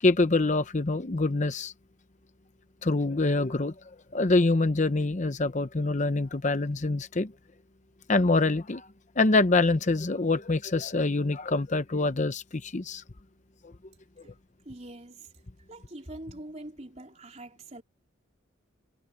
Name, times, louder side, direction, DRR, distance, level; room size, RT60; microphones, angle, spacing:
voice 1, 0.0-1.7 2.8-3.7 4.1-7.3 8.1-8.9 9.2-13.0, left 2 dB, 35° left, 0.8 m, -25 dB
voice 2, 14.7-15.3 15.7-17.8, right 1 dB, 35° right, 3.6 m, -44 dB
head